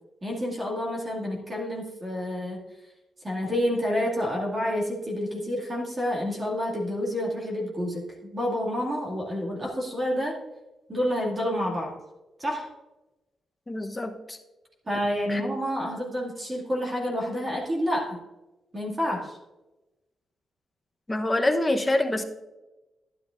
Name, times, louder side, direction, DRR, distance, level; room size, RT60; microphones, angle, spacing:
voice 1, 0.2-2.7 3.2-10.4 10.9-12.0 12.4-12.7 14.9-18.2 18.7-19.4, equal, 30° right, -2 dB, 2.3 m, -29 dB
voice 2, 13.7-14.4 15.3-15.4 21.1-22.2, left 1 dB, 20° left, 5 dB, 1.0 m, -25 dB
11.5 x 10.5 x 2.6 m, 1.0 s
cardioid pair, 90°, 0 cm